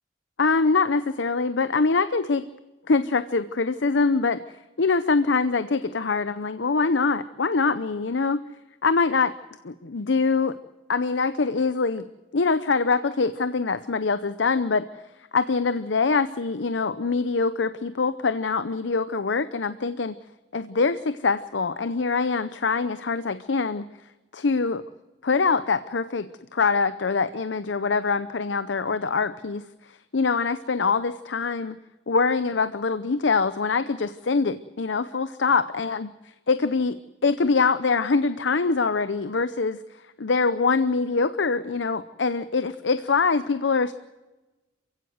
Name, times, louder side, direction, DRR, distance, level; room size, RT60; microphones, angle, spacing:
voice 1, 0.4-2.5 2.9-8.4 8.8-9.3 9.6-10.6 10.9-12.1 12.3-14.9 15.3-20.1 20.5-23.9 24.3-24.8 25.2-29.6 29.9-31.8 32.1-36.1 36.5-39.8 40.2-43.9, left 4 dB, 70° left, 13 dB, 0.7 m, -24 dB
27.5 x 16.0 x 7.8 m, 1.1 s
head